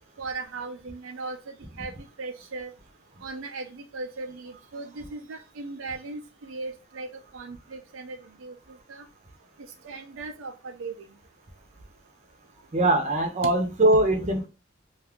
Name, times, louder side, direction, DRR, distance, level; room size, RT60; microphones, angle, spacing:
voice 1, 0.2-1.4 1.8-1.9 2.2-2.7 3.2-7.1 7.3-8.5 8.9-9.1 9.8-10.9, right 3 dB, 75° right, 5 dB, 0.5 m, -37 dB
voice 2, 12.7-14.5, right 1 dB, 35° right, 3 dB, 0.7 m, -22 dB
2.6 x 2.3 x 3.5 m, 0.30 s
head